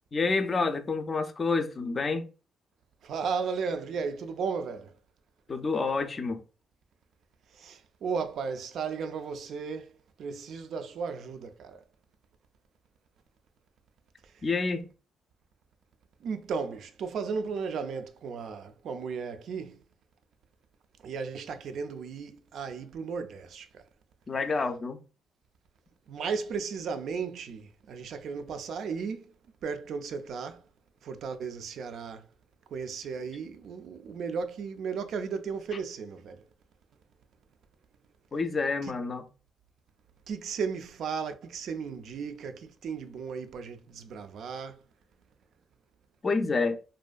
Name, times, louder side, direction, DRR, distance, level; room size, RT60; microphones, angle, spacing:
voice 1, 0.1-2.3 5.5-6.4 14.4-14.9 24.3-25.0 38.3-39.3 46.2-46.8, left 4 dB, 35° left, 0.4 m, -28 dB
voice 2, 3.0-4.9 7.6-9.9 10.2-11.8 16.2-19.8 21.0-23.8 26.1-29.3 29.6-30.6 31.0-32.2 32.7-36.4 40.3-44.8, right 5 dB, 70° right, 0.3 m, -35 dB
2.5 x 2.2 x 2.3 m
cardioid pair, 90°, 0 cm